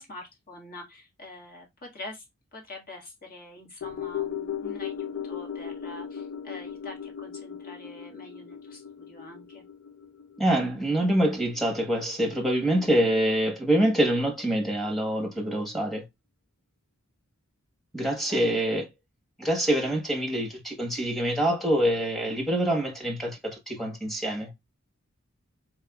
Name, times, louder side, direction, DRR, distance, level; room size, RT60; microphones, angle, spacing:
voice 1, 0.0-2.2 2.5-9.6 18.0-18.7, left 1 dB, 45° left, 1.7 m, -45 dB
sound 1, 3.8-12.2 12.6-12.7, left 8 dB, 65° left, 0.4 m, -37 dB
voice 2, 10.4-16.0 17.9-18.9 19.4-24.5, right 1 dB, ahead, 1.2 m, -25 dB
4.1 x 3.5 x 2.3 m
head